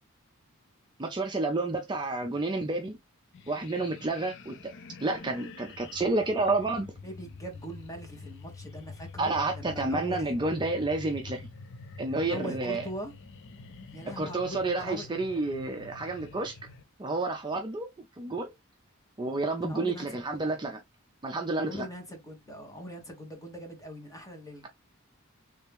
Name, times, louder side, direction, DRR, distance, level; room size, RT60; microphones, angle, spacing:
voice 1, 1.0-3.0 3.5-4.5 5.0-6.9 9.2-11.5 12.0-12.9 14.2-16.6 17.0-17.9 18.2-18.5 19.2-20.8 21.2-21.8, right 2 dB, 20° right, 0.5 m, -30 dB
sound 1, 3.3-16.8, left 3 dB, 60° left, 0.6 m, -46 dB
voice 2, 7.0-10.3 12.2-13.1 13.9-15.1 19.6-20.1 20.3-20.6 21.6-24.7, equal, 15° left, 1.2 m, -42 dB
3.4 x 2.8 x 3.4 m
head